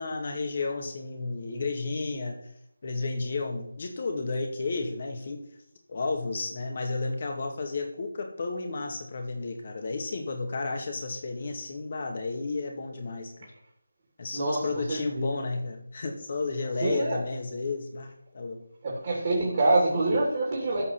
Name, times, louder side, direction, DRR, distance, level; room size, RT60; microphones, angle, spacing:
voice 1, 0.0-2.4 2.8-5.4 5.9-13.5 14.2-18.6, left 3 dB, 45° left, 4 dB, 2.2 m, -32 dB
voice 2, 14.3-15.3 16.8-17.2 18.8-20.8, right 2 dB, 40° right, -3 dB, 3.2 m, -26 dB
13.5 x 4.9 x 6.2 m, 0.71 s
figure-of-eight pair, 160°, 0 cm